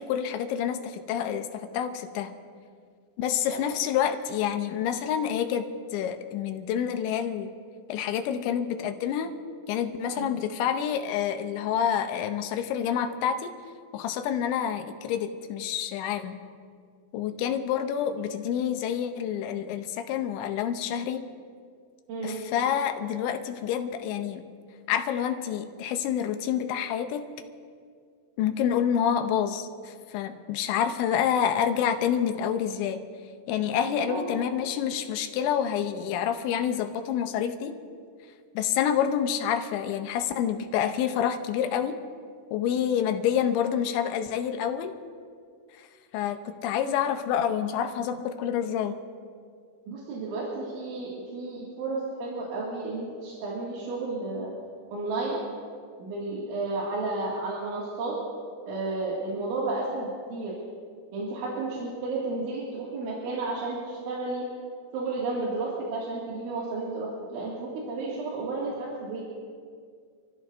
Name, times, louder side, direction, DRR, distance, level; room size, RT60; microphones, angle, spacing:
voice 1, 0.0-2.3 3.2-7.5 7.9-9.3 9.7-13.5 13.9-16.4 17.1-21.2 22.2-24.4 24.9-27.3 28.4-33.0 33.5-37.8 38.5-42.0 42.5-44.9 45.7-45.9 46.1-49.0, left 9 dB, 85° left, 7 dB, 3.1 m, -28 dB
voice 2, 34.0-34.5 49.9-54.5 54.9-55.4 56.0-58.1 58.7-60.5 61.1-64.4 64.9-69.2, right 3 dB, 85° right, -6 dB, 4.7 m, -32 dB
28.5 x 15.0 x 2.7 m, 2.1 s
omnidirectional pair, 5.3 m